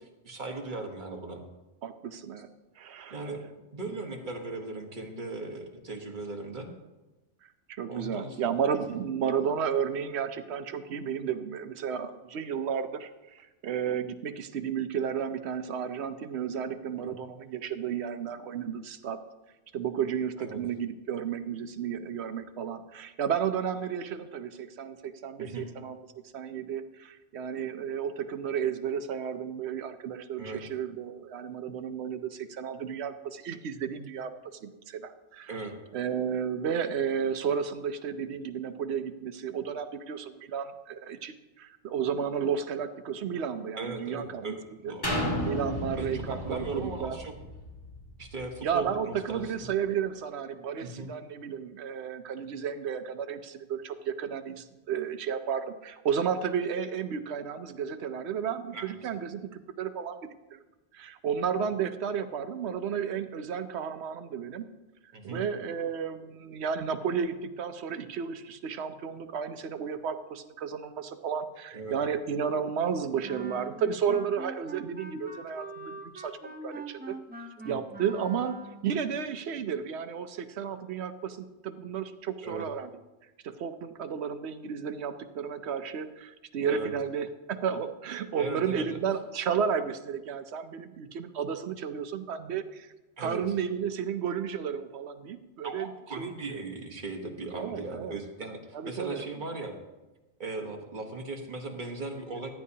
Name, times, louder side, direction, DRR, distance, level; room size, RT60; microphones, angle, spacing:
voice 1, 0.2-1.4 3.1-3.4 3.7-6.7 7.9-8.4 17.1-17.3 20.4-20.6 25.4-25.7 30.4-30.6 35.5-35.8 43.8-45.2 45.9-47.3 48.2-49.5 50.8-51.1 58.7-58.9 65.1-65.4 71.7-72.0 77.6-77.8 82.4-82.7 86.7-86.9 88.3-89.0 93.2-93.4 95.6-99.7 100.4-102.5, right 3 dB, 40° right, 3 dB, 1.3 m, -38 dB
voice 2, 1.8-2.5 2.8-3.2 7.8-13.1 13.3-19.2 19.7-26.0 26.3-34.3 34.6-35.6 35.9-44.6 44.8-44.9 45.5-47.2 48.6-60.2 60.5-60.6 60.9-64.7 65.2-82.9 83.4-92.9 93.2-95.9 96.2-96.6 97.5-98.2 98.7-99.2, right 7 dB, 60° right, 9 dB, 0.9 m, -33 dB
sound 1, 45.0-48.8 49.3-49.4, left 1 dB, 20° left, 1.4 m, -34 dB
Wind instrument woodwind instrument, 73.2-78.9, right 2 dB, 10° right, 0.4 m, -43 dB
14.5 x 9.9 x 2.8 m, 1.1 s
omnidirectional pair, 1.4 m